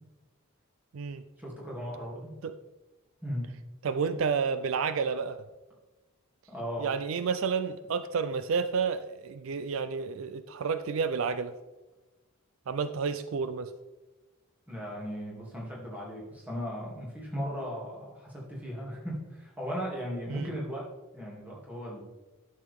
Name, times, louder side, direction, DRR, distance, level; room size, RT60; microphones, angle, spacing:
voice 1, 1.4-2.3 3.2-3.4 4.1-4.2 6.5-6.9 14.7-20.9 21.1-22.0, equal, 5° right, -5 dB, 2.5 m, -37 dB
voice 2, 3.8-5.4 6.8-11.5 12.7-13.7 20.3-20.5, right 5 dB, 70° right, 12 dB, 0.4 m, -30 dB
11.0 x 6.6 x 3.5 m, 1.1 s
head